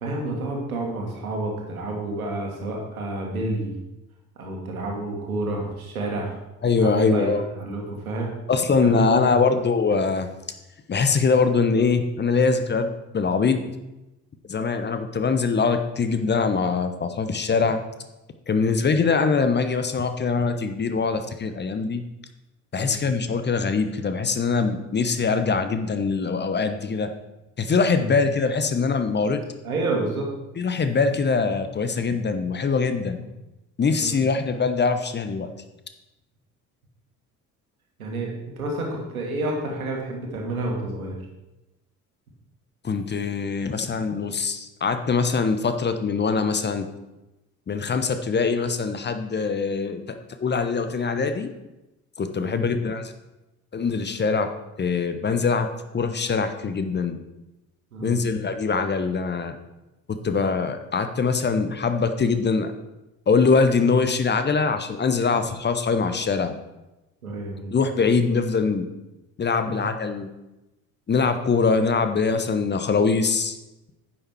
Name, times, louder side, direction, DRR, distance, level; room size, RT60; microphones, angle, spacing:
voice 1, 0.0-3.7 4.4-6.4 6.8-8.3 8.8-9.3 18.5-18.8 22.7-23.0 27.6-28.2 29.6-30.3 33.9-34.2 38.0-41.2 52.4-52.6 57.9-58.3 67.2-67.7 69.6-69.8, right 2 dB, 80° right, 0 dB, 2.0 m, -29 dB
voice 2, 6.6-7.4 8.5-10.3 10.9-13.6 14.5-17.8 18.5-22.0 22.7-27.1 27.6-29.4 30.6-33.2 33.8-35.5 42.8-46.9 47.7-51.5 52.2-53.1 53.7-54.5 54.8-57.2 58.0-59.5 60.1-62.7 63.3-66.5 67.7-68.9 69.4-70.3 71.1-73.6, left 4 dB, 25° left, 9 dB, 1.0 m, -23 dB
10.0 x 7.3 x 4.5 m, 0.98 s
figure-of-eight pair, 55°, 42 cm